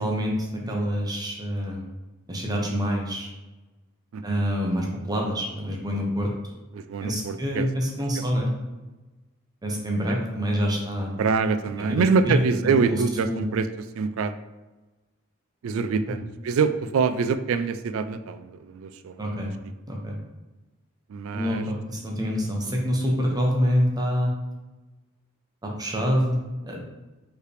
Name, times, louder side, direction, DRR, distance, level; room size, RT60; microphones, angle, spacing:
voice 1, 0.0-1.9 2.3-3.3 4.2-6.3 7.0-8.5 9.6-11.1 11.8-13.0 13.2-13.4 16.1-16.2 19.2-19.5 19.9-20.1 21.3-24.3 25.6-26.8, equal, 20° right, -1 dB, 0.7 m, -26 dB
voice 2, 4.1-4.4 6.7-7.7 10.1-10.2 11.2-14.3 15.6-19.5 21.1-21.6, right 5 dB, 70° right, 11 dB, 0.3 m, -25 dB
4.6 x 3.2 x 3.3 m, 1.1 s
head